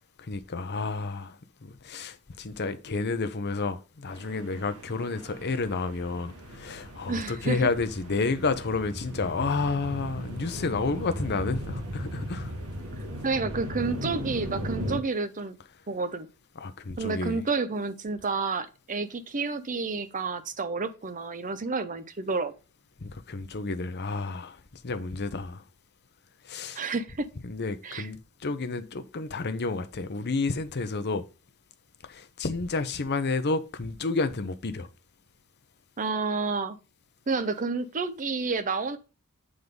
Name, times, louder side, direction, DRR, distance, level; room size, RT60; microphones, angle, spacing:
voice 1, 0.2-12.5 16.6-17.4 23.0-25.6 26.4-26.8 27.4-31.2 32.0-34.9, left 3 dB, 50° left, 0.8 m, -30 dB
sound 1, 4.1-15.0, equal, 80° right, 1.9 m, -37 dB
voice 2, 7.1-7.7 13.2-15.6 15.9-16.3 17.0-22.5 26.7-27.3 27.8-28.1 36.0-36.8 37.3-39.0, right 4 dB, 35° right, 0.7 m, -30 dB
8.0 x 3.7 x 5.2 m
head